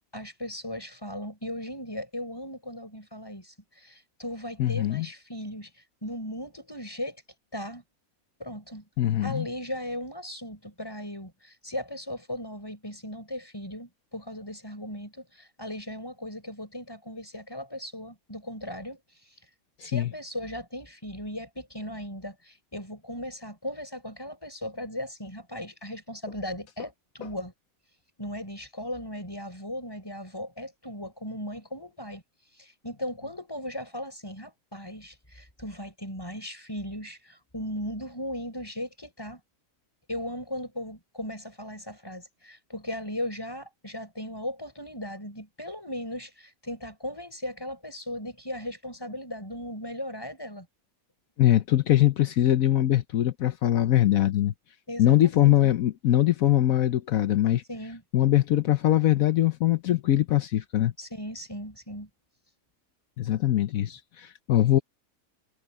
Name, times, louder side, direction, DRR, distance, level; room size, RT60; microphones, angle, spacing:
voice 1, 0.1-7.2 7.5-7.8 8.4-8.9 9.2-19.0 19.8-27.5 28.2-32.2 32.6-39.4 40.1-50.7 54.9-55.7 57.7-58.0 61.0-62.1, left 1 dB, 15° left, 6.3 m, -37 dB
voice 2, 4.6-5.1 9.0-9.5 19.8-20.1 51.4-54.5 55.0-57.6 58.1-60.9 63.2-64.8, left 13 dB, 75° left, 1.2 m, -22 dB
omnidirectional pair, 1.5 m